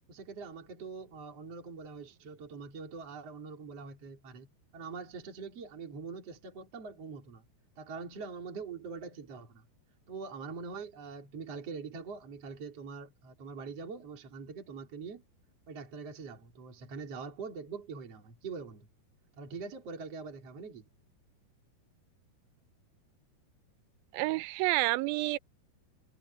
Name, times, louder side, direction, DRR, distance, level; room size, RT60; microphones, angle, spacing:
voice 1, 0.1-4.5 4.7-7.4 7.8-9.7 10.1-15.2 15.7-18.9 19.4-20.9, right 5 dB, 35° right, 4.5 m, -43 dB
voice 2, 24.1-25.4, right 20 dB, 80° right, 2.2 m, -29 dB
omnidirectional pair, 4.9 m